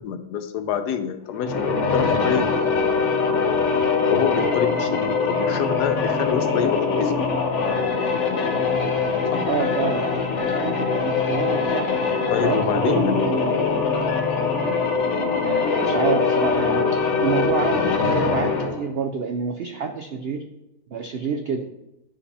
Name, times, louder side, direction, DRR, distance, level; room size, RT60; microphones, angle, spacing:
voice 1, 0.0-2.7 4.1-7.2 9.3-9.5 12.3-13.2, left 8 dB, 80° left, 9 dB, 1.2 m, -26 dB
sound 1, 1.3-18.8, left 4 dB, 50° left, 1.1 m, -22 dB
voice 2, 9.5-10.1 10.6-11.9 12.4-13.6 15.4-20.5 20.9-21.7, right 6 dB, 80° right, 5 dB, 0.5 m, -27 dB
9.9 x 4.9 x 3.4 m, 0.92 s
omnidirectional pair, 1.7 m